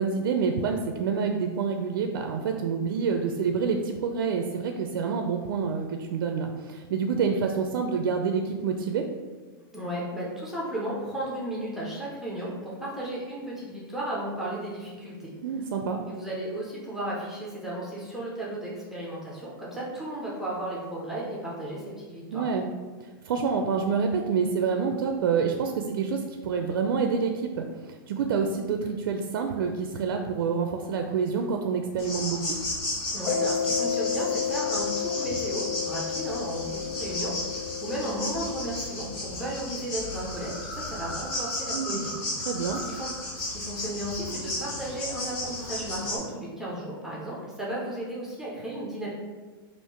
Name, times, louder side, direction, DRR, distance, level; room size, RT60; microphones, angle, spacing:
voice 1, 0.0-9.1 15.4-16.0 22.3-22.7 23.0-32.5 41.7-42.0 42.5-42.8, right 5 dB, 70° right, 4 dB, 0.4 m, -27 dB
voice 2, 9.7-15.3 16.1-22.4 33.1-42.1 42.8-49.1, right 1 dB, 5° right, -5 dB, 0.5 m, -34 dB
sound 1, 32.0-46.2, left 1 dB, 35° left, 1.4 m, -34 dB
Mallet percussion, 33.3-39.6, left 7 dB, 90° left, 0.5 m, -32 dB
3.5 x 2.4 x 4.5 m, 1.4 s
supercardioid pair, 165°, 12 cm